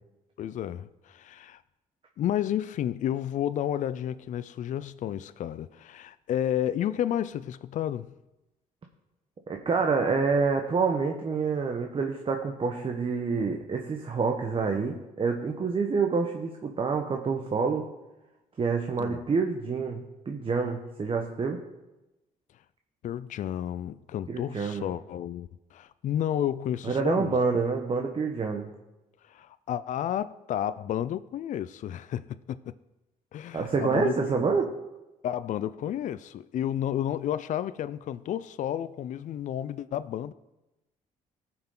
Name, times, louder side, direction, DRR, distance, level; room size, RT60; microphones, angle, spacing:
voice 1, 0.4-1.6 2.2-8.1 19.0-19.2 23.0-27.4 29.3-32.7 33.3-34.4 35.2-40.3, left 10 dB, 60° left, 0.4 m, -31 dB
voice 2, 9.5-17.8 18.6-21.6 24.3-24.9 26.8-28.7 33.5-34.7, right 4 dB, 40° right, 1.1 m, -27 dB
17.5 x 5.9 x 3.8 m
cardioid pair, 80°, 15 cm